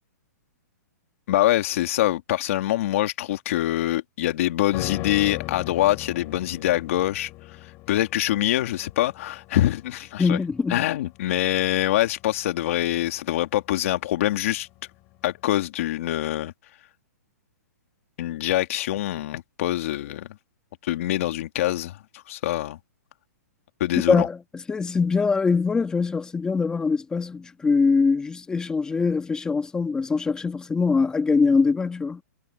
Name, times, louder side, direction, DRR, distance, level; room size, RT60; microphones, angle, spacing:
voice 1, 1.3-7.3 7.6-10.4 10.7-14.7 15.2-16.5 18.2-20.3 20.8-22.0 22.3-22.8 23.8-24.3, left 14 dB, 50° left, 2.4 m, -24 dB
sound 1, 4.7-14.1 14.4-14.5, left 20 dB, 25° left, 7.4 m, -39 dB
voice 2, 10.2-10.9 24.1-32.2, left 4 dB, 10° left, 1.9 m, -23 dB
hypercardioid pair, 155°, 9 cm